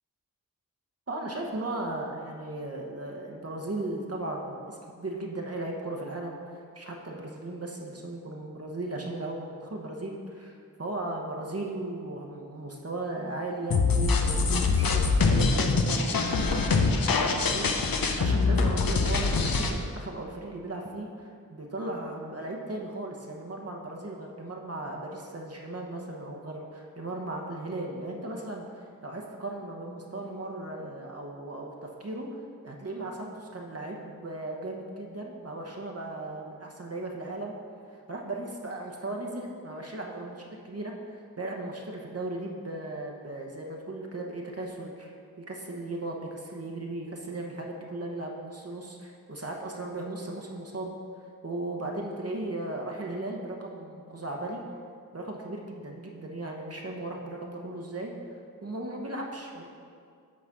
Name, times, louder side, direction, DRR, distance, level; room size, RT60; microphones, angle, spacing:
voice 1, 1.1-32.3 32.6-37.6 37.9-51.0 51.4-54.6 55.1-58.1 58.6-59.6, right 2 dB, 40° right, 0 dB, 1.0 m, -37 dB
sound 1, 13.7-19.7, left 4 dB, 70° left, 0.7 m, -24 dB
8.5 x 4.0 x 5.9 m, 2.3 s
wide cardioid pair, 60°, 37 cm